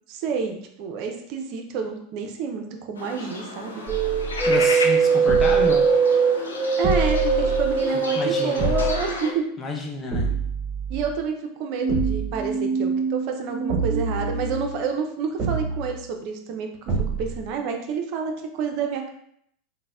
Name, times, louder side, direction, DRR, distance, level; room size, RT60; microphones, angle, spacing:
voice 1, 0.1-3.8 6.8-9.5 10.9-16.7 17.2-19.1, right 6 dB, 55° right, 4 dB, 0.4 m, -29 dB
sound 1, 3.0-9.3, left 3 dB, 90° left, 0.4 m, -30 dB
sound 2, 3.9-8.5 11.8-15.1, right 5 dB, 10° right, 0.6 m, -23 dB
sound 3, 3.9-4.6 5.3-5.9 6.8-7.9 8.6-9.2 10.1-11.2 11.9-12.5 13.7-14.8 15.4-16.0 16.9-17.5, right 4 dB, 35° right, 0.9 m, -27 dB
voice 2, 4.4-5.8 7.9-8.7 9.6-10.3, left 3 dB, 30° left, 1 dB, 0.6 m, -30 dB
3.9 x 2.0 x 2.3 m, 0.70 s
hypercardioid pair, 90°, 0 cm